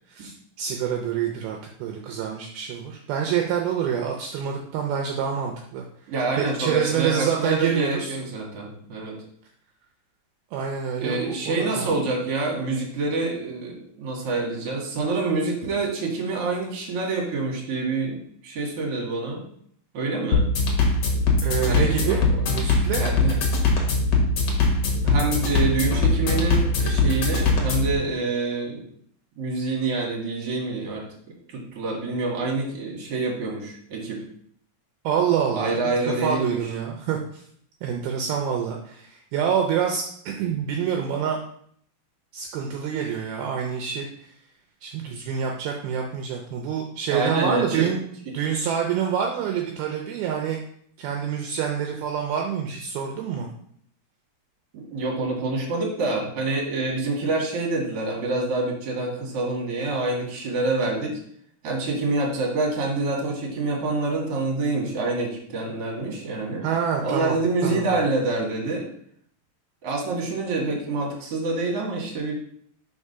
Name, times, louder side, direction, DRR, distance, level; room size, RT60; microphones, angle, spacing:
voice 1, 0.6-8.2 10.5-12.0 21.4-22.2 22.5-23.0 35.0-35.8 36.1-37.4 37.8-41.4 42.3-44.3 44.8-48.0 48.3-50.6 51.0-53.5 66.6-67.4 67.6-67.8, right 8 dB, 80° right, 2 dB, 2.4 m, -27 dB
voice 2, 6.1-9.2 11.0-19.4 19.9-20.4 21.7-22.4 23.0-23.3 25.0-28.8 29.4-31.0 31.5-34.2 35.5-36.6 47.1-47.9 54.7-61.2 61.6-66.6 67.0-68.9 69.8-72.3, right 3 dB, 50° right, -1 dB, 2.1 m, -27 dB
sound 1, 20.3-27.9, left 3 dB, 60° left, 1.9 m, -21 dB
5.2 x 4.8 x 5.5 m, 0.64 s
omnidirectional pair, 4.7 m